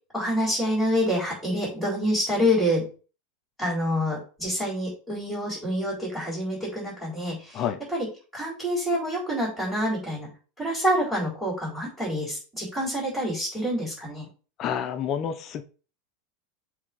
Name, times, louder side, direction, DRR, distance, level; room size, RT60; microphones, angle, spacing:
voice 1, 0.1-2.9 3.6-8.1 8.3-10.3 10.6-14.3, equal, ahead, -8 dB, 3.9 m, -27 dB
voice 2, 14.6-15.6, left 8 dB, 35° left, 8 dB, 0.7 m, -28 dB
7.2 x 3.5 x 5.1 m, 0.36 s
supercardioid pair, 150°, 0 cm